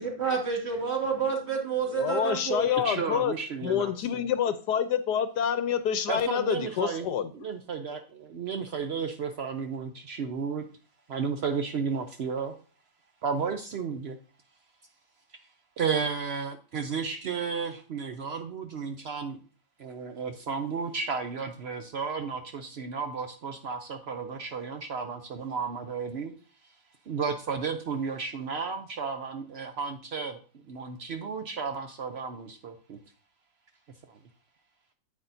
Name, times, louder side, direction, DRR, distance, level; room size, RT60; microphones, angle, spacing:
voice 1, 0.0-3.1, right 6 dB, 35° right, -1 dB, 2.4 m, -29 dB
voice 2, 1.9-3.3 3.6-7.3, left 8 dB, 70° left, 11 dB, 1.2 m, -27 dB
voice 3, 2.6-4.2 6.1-7.1 7.3-10.6 11.1-12.5 13.2-14.2 15.8-19.4 19.8-26.3 27.1-30.4 30.7-33.0, right 5 dB, 80° right, 6 dB, 0.5 m, -33 dB
9.7 x 8.3 x 2.7 m, 0.39 s
omnidirectional pair, 1.9 m